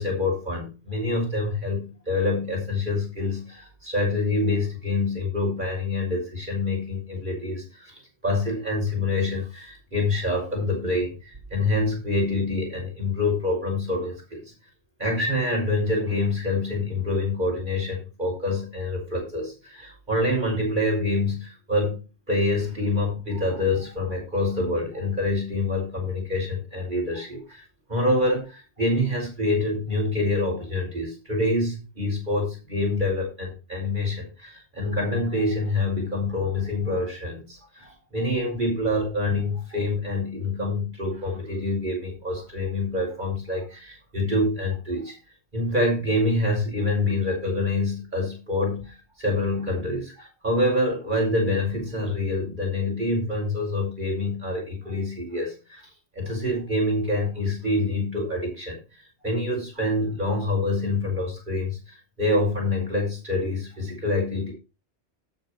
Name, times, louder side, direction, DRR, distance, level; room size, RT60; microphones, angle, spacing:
voice 1, 0.0-14.4 15.0-22.0 22.3-27.6 27.9-45.2 45.5-55.8 56.2-58.8 59.2-64.5, left 2 dB, 45° right, 0 dB, 5.8 m, -26 dB
12.5 x 6.9 x 4.6 m, 0.30 s
omnidirectional pair, 1.1 m